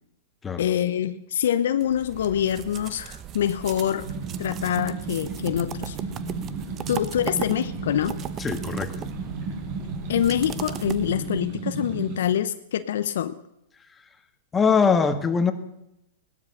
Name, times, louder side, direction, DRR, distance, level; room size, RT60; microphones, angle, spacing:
voice 1, 0.6-4.1 4.4-6.0 6.9-8.2 10.1-13.4, left 10 dB, 70° left, 12 dB, 0.8 m, -25 dB
sound 1, 1.8-11.5, right 10 dB, 30° right, 1.0 m, -38 dB
sound 2, 3.9-12.2, right 4 dB, 50° right, 4.7 m, -34 dB
voice 2, 8.4-9.1 14.5-15.5, left 5 dB, 15° left, 9 dB, 1.6 m, -22 dB
17.5 x 12.5 x 6.7 m, 0.84 s
hypercardioid pair, 115°, 0 cm